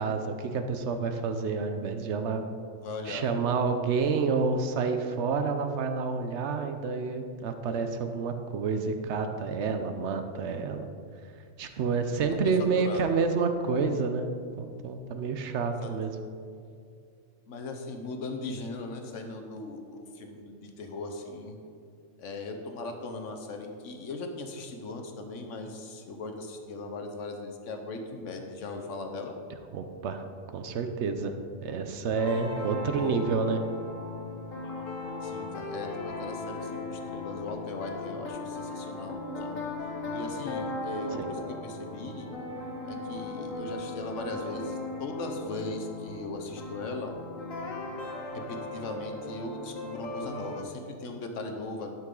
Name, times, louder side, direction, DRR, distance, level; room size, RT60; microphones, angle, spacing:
voice 1, 0.0-2.4 3.1-10.9 11.6-16.2 29.7-30.2 30.5-31.3 31.6-33.6 41.2-41.3, right 5 dB, 65° right, 7 dB, 0.9 m, -29 dB
voice 2, 2.8-3.3 12.3-13.1 15.8-15.9 17.5-21.6 22.2-29.3 33.0-33.2 35.2-39.6 40.1-42.3 42.9-47.1 48.5-51.9, left 3 dB, 70° left, 4 dB, 1.2 m, -38 dB
sound 1, 32.1-50.6, left 2 dB, 85° left, 1.4 m, -37 dB
11.5 x 6.0 x 3.8 m, 2.3 s
omnidirectional pair, 1.3 m